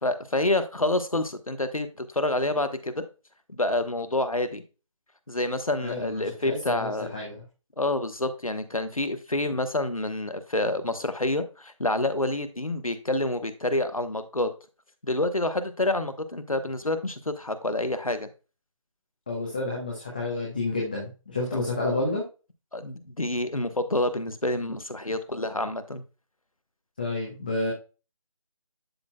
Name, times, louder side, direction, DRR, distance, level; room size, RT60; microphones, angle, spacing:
voice 1, 0.0-1.9 2.1-3.0 3.5-4.6 5.3-7.1 7.8-14.5 15.0-18.3 21.5-21.6 22.7-26.0, left 2 dB, 85° left, 11 dB, 1.2 m, -28 dB
voice 2, 5.8-7.4 19.3-22.2 27.0-27.7, left 2 dB, 15° left, -3 dB, 0.8 m, -30 dB
11.5 x 4.2 x 2.2 m, 0.33 s
figure-of-eight pair, 160°, 17 cm